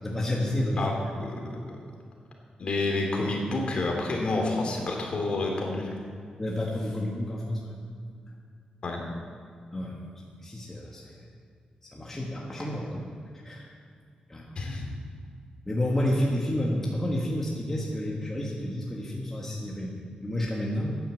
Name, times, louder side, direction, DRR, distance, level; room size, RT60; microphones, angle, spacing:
voice 1, 0.0-0.8 1.5-1.6 6.4-7.7 9.7-10.0 10.4-11.2 11.9-13.1 13.4-13.6 14.3-14.6 15.6-19.9 20.2-21.0, left 1 dB, 15° left, -3 dB, 1.5 m, -30 dB
voice 2, 0.8-1.4 2.6-5.9 8.8-9.0 14.6-14.8, left 2 dB, 40° left, 1 dB, 2.7 m, -29 dB
13.0 x 9.6 x 7.6 m, 2.2 s
wide cardioid pair, 160°, 3 cm